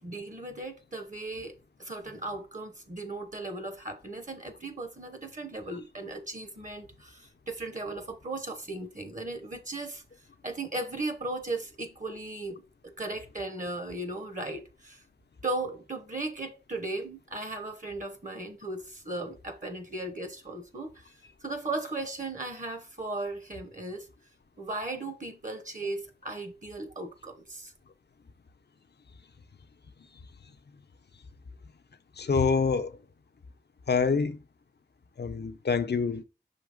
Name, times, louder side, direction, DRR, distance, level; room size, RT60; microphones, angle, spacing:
voice 1, 0.0-1.5 1.8-10.0 10.4-12.6 13.0-15.0 15.4-21.0 21.4-24.1 24.6-27.7, right 2 dB, 50° right, 0.9 m, -37 dB
voice 2, 32.2-32.9 33.9-34.4 35.2-36.2, left 5 dB, 85° left, 0.6 m, -26 dB
5.8 x 3.2 x 5.1 m
wide cardioid pair, 50°, 17 cm